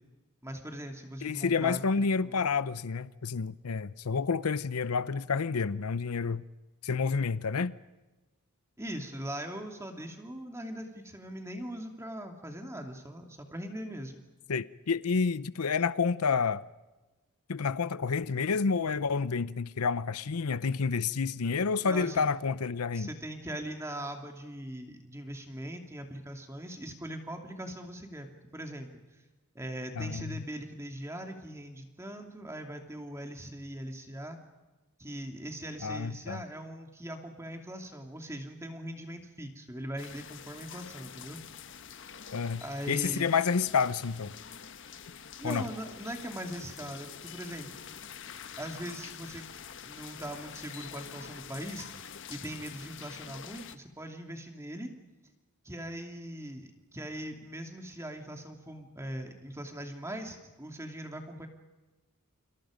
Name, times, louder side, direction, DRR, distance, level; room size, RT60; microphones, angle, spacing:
voice 1, 0.4-1.8 2.2-2.4 8.8-14.2 21.8-22.2 22.9-28.3 28.5-28.9 29.5-34.4 35.0-41.4 42.6-43.3 45.4-47.8 48.6-49.4 49.8-54.9 55.6-61.5, right 1 dB, 10° right, 2.7 m, -40 dB
voice 2, 1.2-6.4 6.8-7.7 14.5-16.6 17.5-23.1 30.0-30.4 35.8-36.4 42.3-42.6 42.9-44.3 45.4-45.7, left 5 dB, 80° left, 0.7 m, -29 dB
sound 1, 40.0-53.8, left 7 dB, 55° left, 1.4 m, -46 dB
30.0 x 27.0 x 5.2 m
head